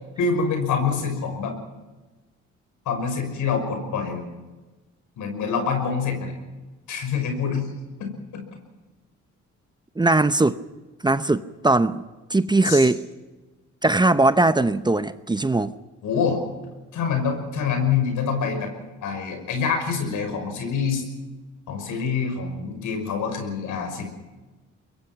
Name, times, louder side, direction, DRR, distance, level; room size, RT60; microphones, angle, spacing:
voice 1, 0.2-1.5 2.9-4.2 5.2-6.3 6.9-7.7 8.0-8.4 12.6-12.9 16.0-16.4 16.9-18.7 19.0-21.0 21.7-24.1, left 5 dB, 80° left, 5 dB, 5.9 m, -26 dB
voice 2, 10.0-10.6 11.0-12.0 12.3-13.0 13.8-15.7, right 2 dB, 15° right, 12 dB, 0.8 m, -20 dB
24.0 x 22.0 x 5.9 m, 1.2 s
cardioid pair, 90°, 30 cm